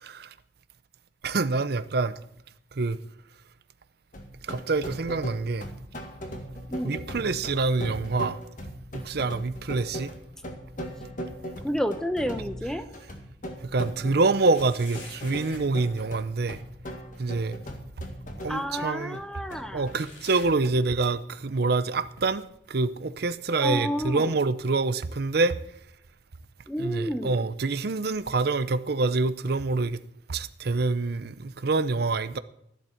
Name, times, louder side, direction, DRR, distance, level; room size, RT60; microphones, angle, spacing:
voice 1, 0.0-0.3 1.2-2.1 2.7-3.0 4.4-5.7 6.8-8.4 8.9-10.1 13.6-16.6 17.2-17.6 18.4-19.2 19.7-25.6 26.8-30.0 30.3-32.4, right 3 dB, 60° right, 0.6 m, -26 dB
sound 1, 4.1-20.1, equal, 45° left, 1.9 m, -39 dB
voice 2, 6.7-7.0 11.6-12.9 18.5-19.9 23.6-24.4 26.7-27.5, equal, 5° left, 0.9 m, -30 dB
sound 2, 9.8-10.5 10.8-12.7 13.2-13.3 14.3-15.7 17.4-17.5 18.5-18.6 19.9-21.3 21.6-22.0 22.7-22.8 23.7-23.8, left 2 dB, 75° left, 5.1 m, -49 dB
13.5 x 11.5 x 4.4 m
head